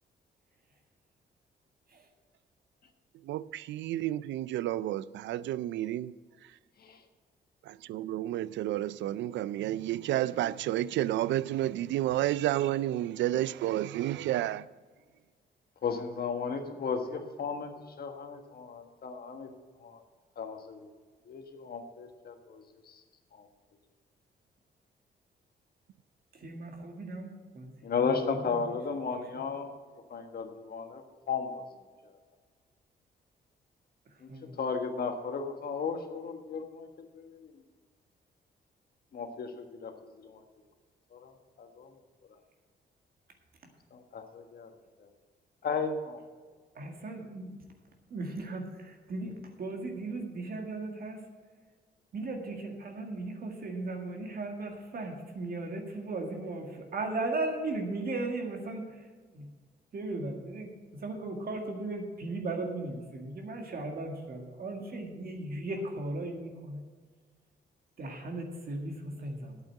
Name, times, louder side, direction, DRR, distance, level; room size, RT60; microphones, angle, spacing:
voice 1, 3.2-6.2 7.7-14.6, right 13 dB, 90° right, 0.4 m, -31 dB
voice 2, 15.8-17.7 18.0-19.5 19.8-20.0 20.4-20.9 21.3-23.0 23.3-23.5 27.8-29.7 30.1-31.6 34.2-34.3 34.6-36.9 37.1-37.5 39.1-40.4 41.1-41.3 41.6-41.9 43.9-44.7 45.0-45.1 45.6-46.2, left 5 dB, 60° left, 1.5 m, -35 dB
voice 3, 26.3-27.7 28.0-28.6 29.3-29.4 34.3-34.6 46.7-47.6 48.1-51.2 52.1-59.5 59.9-66.8 68.0-69.6, right 2 dB, 55° right, 1.9 m, -37 dB
9.0 x 8.2 x 7.5 m
cardioid pair, 100°, 18 cm